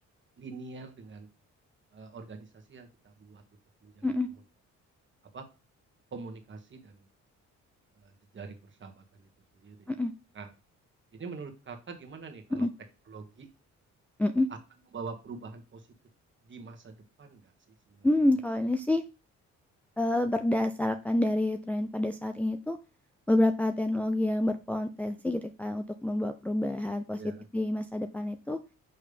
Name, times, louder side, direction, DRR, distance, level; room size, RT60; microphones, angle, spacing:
voice 1, 0.4-1.3 1.9-3.4 3.8-4.1 5.3-5.4 6.1-7.1 8.0-9.3 9.5-9.9 10.3-10.5 11.1-12.7 13.1-13.5 14.5-14.6 14.9-15.9 16.4-17.5 17.9-18.1 27.2-27.5, right 4 dB, 40° right, 4 dB, 1.5 m, -44 dB
voice 2, 18.0-19.0 20.0-22.8 23.3-27.2 27.5-28.6, left 1 dB, 5° left, 6 dB, 0.5 m, -28 dB
6.8 x 3.2 x 5.1 m, 0.31 s
cardioid pair, 90°, 30 cm